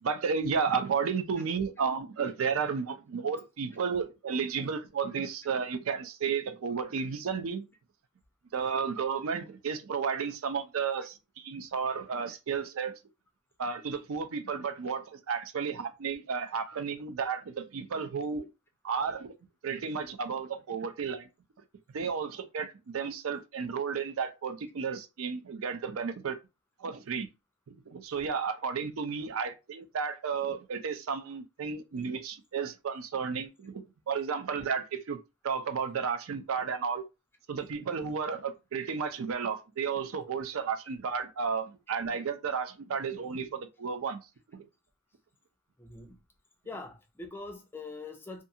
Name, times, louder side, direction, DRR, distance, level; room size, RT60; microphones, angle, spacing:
voice 1, 0.0-7.7 8.5-12.9 13.6-18.5 18.8-19.3 19.6-21.3 21.9-26.4 26.8-27.3 27.7-35.2 35.4-37.0 37.5-44.2 44.5-44.6, right 6 dB, 75° right, 0.4 m, -33 dB
voice 2, 45.8-46.3 46.6-48.4, left 3 dB, 10° left, 0.4 m, -43 dB
2.5 x 2.3 x 2.7 m
head